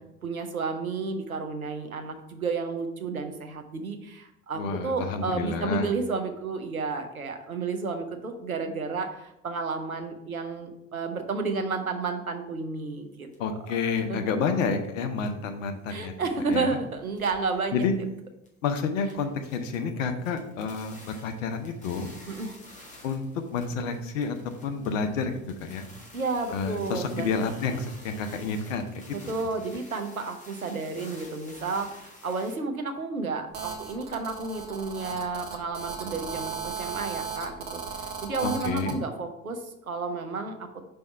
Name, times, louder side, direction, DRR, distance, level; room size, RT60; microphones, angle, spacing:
voice 1, 0.2-13.3 13.7-13.8 14.1-14.2 15.9-17.9 22.3-22.5 26.1-27.3 29.1-40.8, right 4 dB, 90° right, 5 dB, 0.7 m, -31 dB
voice 2, 4.5-5.9 13.4-16.1 16.5-16.8 17.7-17.9 18.6-22.1 23.0-23.2 23.5-24.3 24.6-25.3 25.6-25.9 26.5-29.1 38.4-39.0, left 5 dB, 65° left, 7 dB, 0.8 m, -29 dB
sound 1, 13.3-13.4 14.0-14.1 14.6-14.9 15.2-15.5 15.8-16.7 17.0-18.1 18.4-18.5 18.9-32.6, left 1 dB, 20° left, 1.8 m, -51 dB
Telephone, 33.5-39.0, right 6 dB, 65° right, 1.1 m, -36 dB
5.4 x 3.4 x 5.5 m, 0.82 s
figure-of-eight pair, 65°, 41 cm